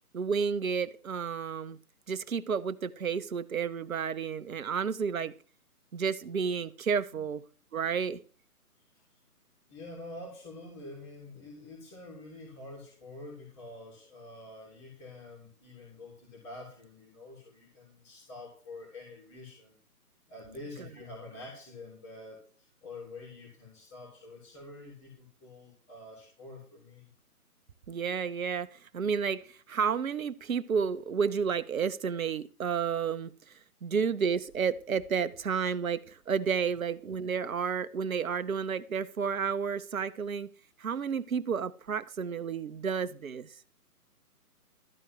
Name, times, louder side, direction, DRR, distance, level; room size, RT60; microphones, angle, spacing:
voice 1, 0.1-1.8 2.1-5.4 5.9-7.4 7.7-8.2 27.9-33.3 33.8-40.5 40.8-43.5, right 6 dB, 60° right, 1.0 m, -31 dB
voice 2, 9.7-19.8 20.3-27.1, left 2 dB, 20° left, 3.2 m, -47 dB
13.0 x 4.6 x 7.8 m
figure-of-eight pair, 150°, 46 cm